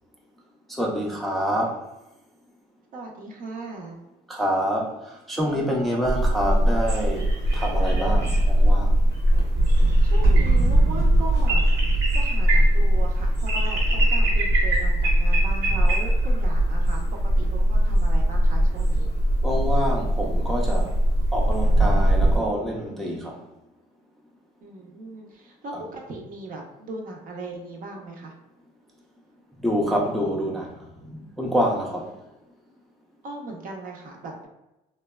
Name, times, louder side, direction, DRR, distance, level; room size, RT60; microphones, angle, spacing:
voice 1, 0.8-1.8 4.3-7.3 7.5-8.9 19.4-21.0 21.3-23.4 29.6-30.7 31.0-32.1, equal, ahead, -2 dB, 0.4 m, -26 dB
voice 2, 2.9-4.0 10.0-11.6 12.1-19.1 24.6-28.3 33.2-34.5, right 2 dB, 55° right, 1 dB, 0.6 m, -38 dB
sound 1, 6.0-22.4, right 1 dB, 85° right, 1.0 m, -20 dB
3.1 x 2.1 x 2.2 m, 0.98 s
cardioid pair, 110°, 17 cm